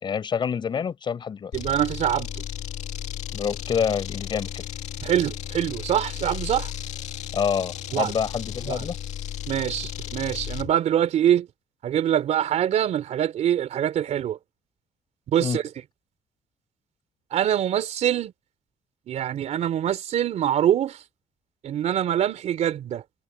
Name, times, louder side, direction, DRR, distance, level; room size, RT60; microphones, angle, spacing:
voice 1, 0.0-1.5 3.3-4.7 7.3-8.9 15.4-15.6, left 7 dB, 35° left, 5.1 m, -27 dB
sound 1, 1.5-10.7, left 10 dB, 55° left, 2.0 m, -34 dB
voice 2, 1.5-2.5 5.0-6.7 7.9-8.1 8.6-8.9 9.5-11.5 11.8-14.4 15.3-15.6 17.3-18.3 19.1-21.0 21.6-23.0, right 10 dB, 55° right, 3.6 m, -24 dB
cardioid pair, 160°, 14 cm